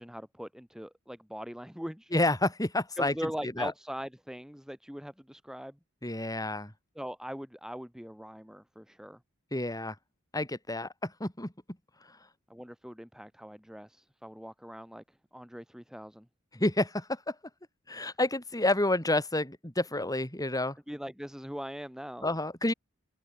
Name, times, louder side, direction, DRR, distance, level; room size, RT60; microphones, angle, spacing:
voice 1, 0.0-2.1 3.0-5.8 7.0-9.2 12.5-16.3 20.9-22.3, equal, 5° right, 2.3 m, -41 dB
voice 2, 2.1-3.3 3.6-3.7 6.0-6.7 9.5-10.0 10.3-11.5 12.0-12.2 16.5-17.4 17.9-20.8 22.2-22.7, left 2 dB, 15° left, 5.7 m, -29 dB
open air
head